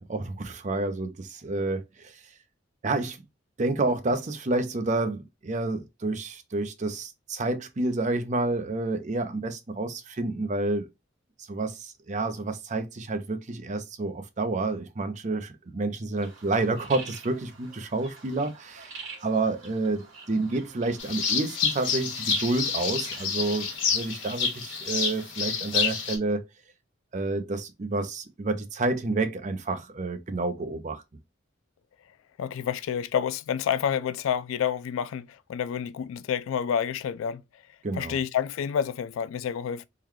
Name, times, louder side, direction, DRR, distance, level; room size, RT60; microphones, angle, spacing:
voice 1, 0.0-2.2 2.8-3.2 3.6-10.9 11.5-18.9 19.2-26.5 27.1-31.0 37.8-38.2, right 2 dB, 35° right, 0.5 m, -29 dB
sound 1, 16.1-23.8, right 4 dB, 90° right, 1.7 m, -46 dB
sound 2, 21.0-26.2, left 6 dB, 65° left, 1.4 m, -28 dB
voice 2, 32.4-37.4 37.9-39.9, left 8 dB, 80° left, 0.3 m, -29 dB
3.7 x 2.2 x 3.1 m
head